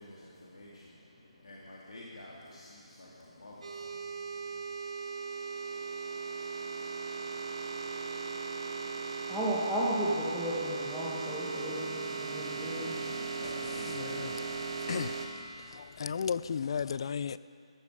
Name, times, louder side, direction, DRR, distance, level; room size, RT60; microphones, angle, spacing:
voice 1, 0.0-4.6 12.2-14.7, left 1 dB, 80° left, -5 dB, 2.4 m, -49 dB
sound 1, 3.6-15.3, right 4 dB, 75° right, 2.8 m, -38 dB
voice 2, 9.3-13.0, equal, ahead, -12 dB, 1.8 m, -34 dB
voice 3, 13.8-14.3 14.9-15.2 15.7-17.4, left 6 dB, 55° left, 16 dB, 0.4 m, -34 dB
14.0 x 13.5 x 4.9 m, 2.5 s
figure-of-eight pair, 150°, 3 cm